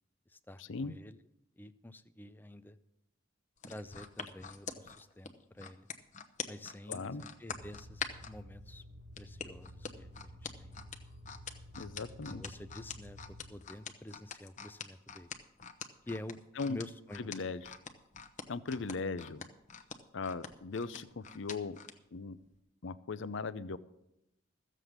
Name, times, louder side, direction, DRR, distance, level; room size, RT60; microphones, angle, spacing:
voice 1, 0.3-1.2 1.6-2.8 3.7-5.9 6.5-8.8 9.2-10.8 11.7-11.9 12.2-15.3 16.1-17.5 18.7-18.9, left 1 dB, 10° left, 12 dB, 0.4 m, -48 dB
sound 1, 3.6-8.3 9.2-22.0 22.4-22.6, left 6 dB, 35° left, 0.9 m, -44 dB
voice 2, 6.9-7.2 11.8-12.4 16.6-16.8 17.2-17.6 18.5-19.4 20.1-21.8 22.1-22.4 22.8-23.8, left 4 dB, 65° left, 15 dB, 0.6 m, -38 dB
sound 2, 7.5-13.5, equal, 75° right, 1.7 m, -52 dB
14.5 x 7.6 x 6.6 m, 0.86 s
head